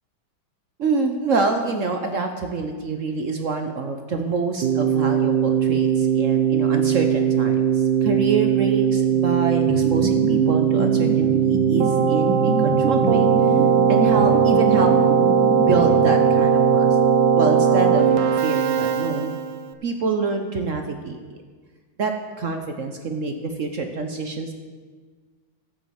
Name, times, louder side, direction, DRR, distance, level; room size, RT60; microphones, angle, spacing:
voice 1, 0.8-13.3 13.9-14.9 15.6-17.0 17.3-19.3 19.8-21.2 22.0-22.1 22.4-24.5, right 4 dB, 55° right, 5 dB, 1.0 m, -26 dB
Keyboard (musical), 4.6-19.7, right 7 dB, 70° right, 1.3 m, -19 dB
sound 1, 9.7-16.4, right 2 dB, 85° right, 2.7 m, -27 dB
13.5 x 7.3 x 7.1 m, 1.5 s
omnidirectional pair, 2.2 m